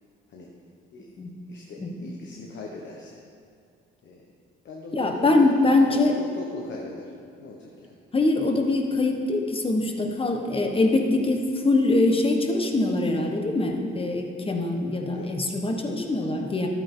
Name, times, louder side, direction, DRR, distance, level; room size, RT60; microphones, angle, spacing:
voice 1, 1.5-3.2 4.0-4.3 4.6-7.1 7.4-8.0 15.1-15.3 16.0-16.1, left 2 dB, 65° left, -1 dB, 1.2 m, -40 dB
voice 2, 4.9-6.2 8.1-16.7, left 2 dB, 25° left, 3 dB, 1.3 m, -23 dB
12.5 x 8.6 x 3.8 m, 2.3 s
cardioid pair, 90°, 20 cm